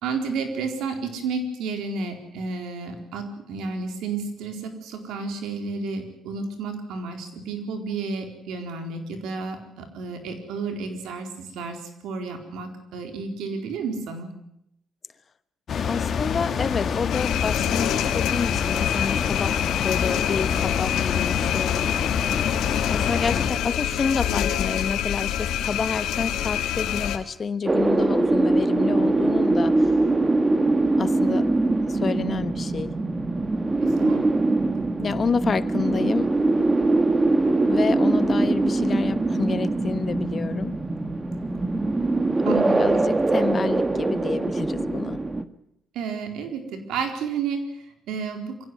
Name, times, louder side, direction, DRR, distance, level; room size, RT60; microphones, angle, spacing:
voice 1, 0.0-14.3 33.8-34.2 42.5-42.9 45.9-48.7, right 4 dB, 85° right, 5 dB, 4.1 m, -31 dB
sound 1, 15.7-23.5, left 7 dB, 55° left, 2.2 m, -27 dB
voice 2, 15.8-19.6 19.8-21.9 22.9-29.9 31.0-31.5 31.8-32.9 35.0-36.3 37.7-40.8 42.4-45.2, left 5 dB, 40° left, 14 dB, 1.1 m, -29 dB
sound 2, 17.1-27.2, left 10 dB, 85° left, 1.9 m, -26 dB
sound 3, 27.7-45.4, right 2 dB, 20° right, 1.6 m, -22 dB
23.5 x 16.5 x 9.5 m, 0.80 s
cardioid pair, 90°, 0 cm